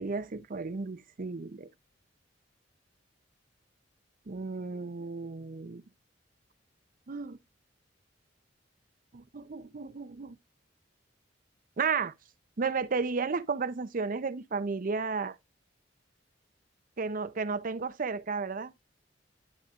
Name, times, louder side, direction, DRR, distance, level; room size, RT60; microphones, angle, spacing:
voice 1, 0.0-1.7 4.3-5.8 7.1-7.4 9.1-10.4 11.8-12.1 12.6-15.4 17.0-18.7, right 4 dB, 50° right, 0.6 m, -33 dB
10.0 x 6.3 x 2.4 m
head